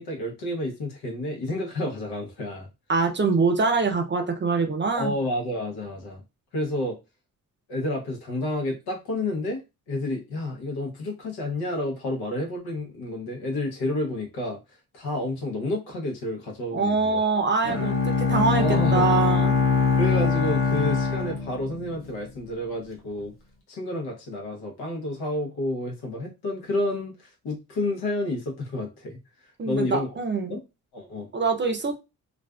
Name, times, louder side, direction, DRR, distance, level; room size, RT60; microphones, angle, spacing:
voice 1, 0.0-2.7 4.9-6.2 6.5-7.0 7.7-9.6 9.9-17.2 18.6-19.1 20.0-23.3 23.7-29.2 29.6-30.2 30.5-30.6 30.9-31.3, left 1 dB, 85° left, 0.9 m, -30 dB
voice 2, 2.9-5.1 16.7-19.6 29.6-30.6 31.3-32.0, right 4 dB, 30° right, 0.6 m, -24 dB
Bowed string instrument, 17.6-22.1, left 4 dB, 35° left, 0.8 m, -23 dB
2.4 x 2.3 x 2.3 m
supercardioid pair, 55°, 37 cm